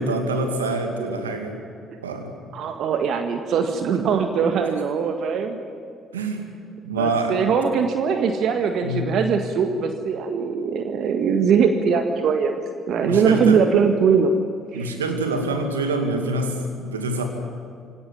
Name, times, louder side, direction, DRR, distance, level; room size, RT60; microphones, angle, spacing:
voice 1, 0.0-1.5 2.0-2.3 6.1-6.5 6.8-7.4 8.8-9.1 13.0-13.7 14.7-17.2, right 2 dB, 90° right, 5 dB, 2.4 m, -26 dB
voice 2, 2.5-5.6 7.0-12.5 12.9-14.3 14.7-14.9, right 6 dB, 60° right, 6 dB, 1.8 m, -21 dB
23.5 x 18.0 x 10.0 m, 2.4 s
hypercardioid pair, 50°, 0 cm